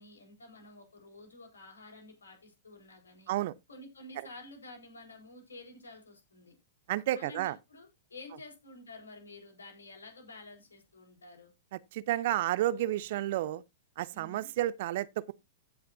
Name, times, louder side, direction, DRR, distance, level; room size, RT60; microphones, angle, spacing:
voice 1, 0.0-3.3 3.7-6.5 7.1-11.5 14.1-14.5, left 2 dB, 85° left, 4.5 m, -50 dB
voice 2, 6.9-7.6 11.7-13.6 14.0-15.3, right 14 dB, 55° right, 0.7 m, -31 dB
16.0 x 5.8 x 2.6 m
hypercardioid pair, 110°, 0 cm